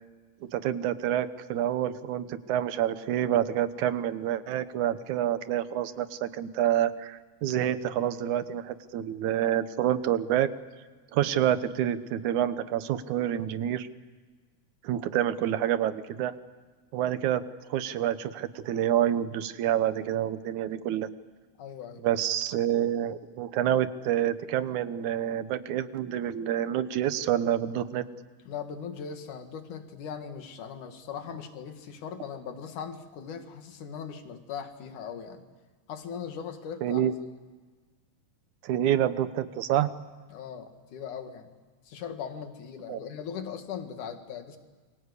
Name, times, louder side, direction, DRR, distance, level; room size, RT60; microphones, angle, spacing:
voice 1, 0.4-10.5 11.1-13.9 14.8-16.3 16.9-17.4 17.7-21.1 22.0-28.0 36.8-37.1 38.6-39.9 42.9-43.0, right 11 dB, 75° right, 13 dB, 2.3 m, -28 dB
voice 2, 21.6-22.0 28.5-35.4 35.9-37.1 40.3-41.6 41.9-44.6, left 7 dB, 75° left, 7 dB, 3.4 m, -39 dB
28.0 x 24.0 x 8.2 m, 1.4 s
omnidirectional pair, 3.6 m